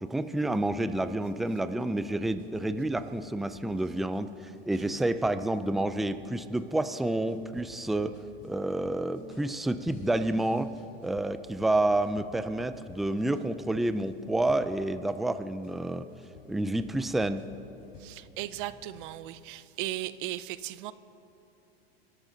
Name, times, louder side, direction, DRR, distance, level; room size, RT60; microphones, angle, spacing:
voice 1, 0.0-8.2 8.4-10.7 11.0-16.1 16.5-17.5, right 1 dB, ahead, 0.3 m, -29 dB
sound 1, 0.6-15.1 15.6-19.1, left 5 dB, 50° left, 3.9 m, -54 dB
voice 2, 18.0-20.9, right 15 dB, 55° right, 0.7 m, -37 dB
29.0 x 13.0 x 3.9 m
hypercardioid pair, 120°, 31 cm